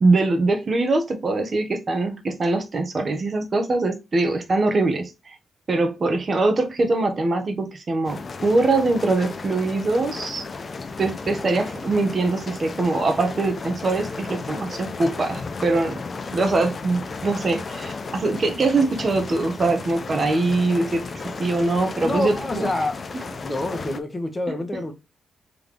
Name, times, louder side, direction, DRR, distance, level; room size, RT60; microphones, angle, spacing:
voice 1, 0.0-5.4 5.7-10.4 11.0-16.0 16.3-22.7, right 3 dB, 45° right, 1.2 m, -22 dB
sound 1, 8.0-24.0, left 4 dB, 45° left, 0.6 m, -34 dB
voice 2, 22.0-23.0 23.4-24.9, left 2 dB, 25° left, 1.2 m, -27 dB
3.7 x 3.4 x 3.3 m
cardioid pair, 65°, 0 cm